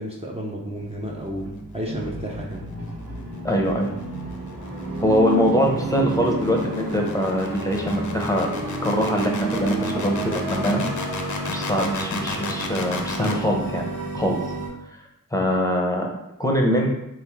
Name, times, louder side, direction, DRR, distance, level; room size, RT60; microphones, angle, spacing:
voice 1, 0.0-2.6, equal, 20° right, -3 dB, 0.7 m, -32 dB
sound 1, 0.6-14.7, right 2 dB, 45° right, 1.5 m, -31 dB
voice 2, 3.4-3.9 5.0-8.5 8.8-10.8 11.5-13.9 14.1-14.4 15.3-16.1 16.4-16.9, equal, 10° left, 0 dB, 0.7 m, -23 dB
sound 2, 4.2-13.4, left 4 dB, 60° left, 0.7 m, -34 dB
3.5 x 3.1 x 3.5 m, 0.83 s
cardioid pair, 60°, 34 cm